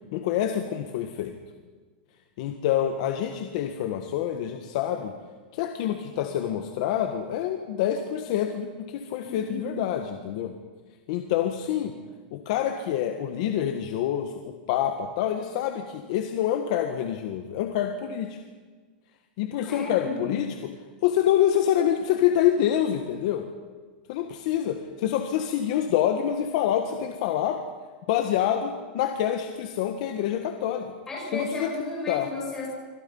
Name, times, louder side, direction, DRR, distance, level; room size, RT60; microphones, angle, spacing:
voice 1, 0.1-1.4 2.4-5.1 5.5-10.5 11.1-12.0 12.3-18.4 19.4-20.7 21.0-23.5 24.1-27.6 28.1-30.9 31.3-31.7 32.1-32.3, left 10 dB, 40° left, 5 dB, 1.5 m, -26 dB
voice 2, 9.2-9.8 19.6-20.4 31.1-32.7, left 3 dB, 10° left, -4 dB, 7.8 m, -34 dB
27.0 x 25.0 x 5.6 m, 1.5 s
supercardioid pair, 180°, 5 cm